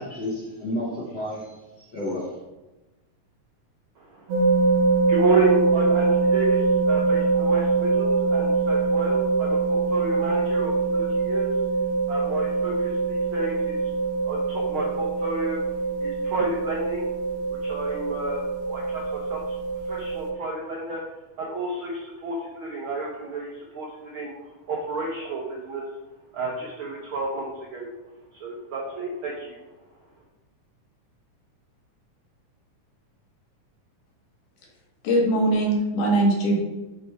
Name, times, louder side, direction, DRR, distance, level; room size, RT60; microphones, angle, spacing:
voice 1, 0.0-2.4, left 1 dB, 60° left, -4 dB, 1.1 m, -31 dB
voice 2, 4.0-11.5 12.1-13.8 14.2-15.6 16.0-17.0 17.6-19.6 19.8-21.0 21.4-25.8 26.3-27.9 28.3-29.6, right 3 dB, 85° right, -3 dB, 1.1 m, -31 dB
sound 1, 4.3-20.3, right 4 dB, 70° right, 1.8 m, -23 dB
voice 3, 35.0-36.6, right 1 dB, 75° left, -1 dB, 2.8 m, -21 dB
7.6 x 3.4 x 4.7 m, 1.1 s
omnidirectional pair, 3.6 m